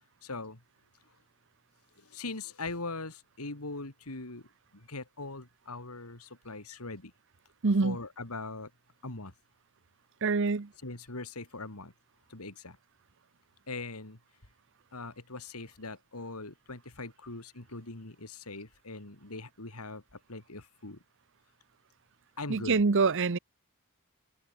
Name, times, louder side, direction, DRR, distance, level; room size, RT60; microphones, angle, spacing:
voice 1, 0.2-0.6 2.0-4.5 4.7-7.1 7.8-8.7 9.0-9.3 10.8-11.9 12.3-12.8 13.7-14.2 14.9-21.0 22.4-22.8, left 3 dB, 85° left, 3.1 m, -41 dB
voice 2, 7.6-8.0 10.2-10.7 22.5-23.4, right 4 dB, 60° right, 0.8 m, -25 dB
head